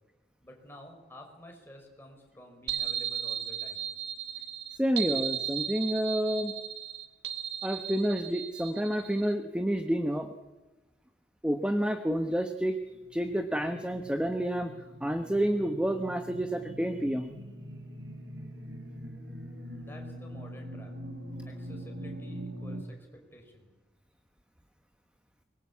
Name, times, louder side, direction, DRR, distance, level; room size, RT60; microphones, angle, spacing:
voice 1, 0.4-3.9 19.8-20.9 21.4-23.7, equal, 15° left, 2 dB, 5.4 m, -51 dB
sound 1, 2.7-9.3, right 9 dB, 65° right, 1.9 m, -35 dB
voice 2, 4.8-6.5 7.6-10.3 11.4-12.8 13.1-14.7 15.0-17.3, equal, 5° right, 6 dB, 1.1 m, -29 dB
sound 2, 13.0-22.8, equal, 85° right, 3.7 m, -43 dB
24.0 x 21.5 x 8.5 m, 1.1 s
head